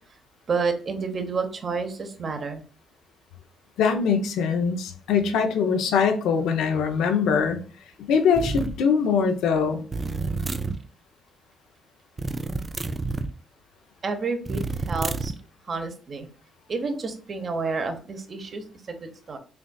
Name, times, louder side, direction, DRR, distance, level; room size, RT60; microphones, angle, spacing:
voice 1, 0.5-2.6 14.0-15.3 15.7-16.3 16.7-19.4, right 4 dB, 45° right, 6 dB, 0.9 m, -30 dB
voice 2, 3.8-7.6 8.0-9.8, left 6 dB, 85° left, 6 dB, 0.7 m, -22 dB
sound 1, 8.3-8.8 9.9-10.8 12.2-13.3 14.5-15.4, right 3 dB, 25° right, 0.4 m, -29 dB
6.8 x 2.5 x 2.3 m, 0.40 s
cardioid pair, 90°, 0 cm